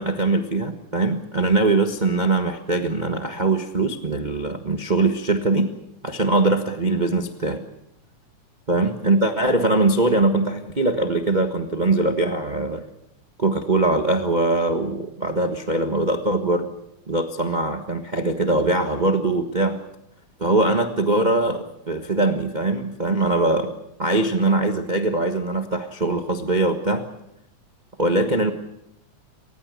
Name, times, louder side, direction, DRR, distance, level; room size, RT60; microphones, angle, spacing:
voice 1, 0.0-5.7 6.0-7.6 8.7-12.8 13.4-16.7 17.1-19.8 20.4-23.7 24.0-27.0 28.0-28.5, right 2 dB, 50° right, 6 dB, 0.5 m, -22 dB
28.5 x 15.5 x 8.4 m, 0.80 s
omnidirectional pair, 3.5 m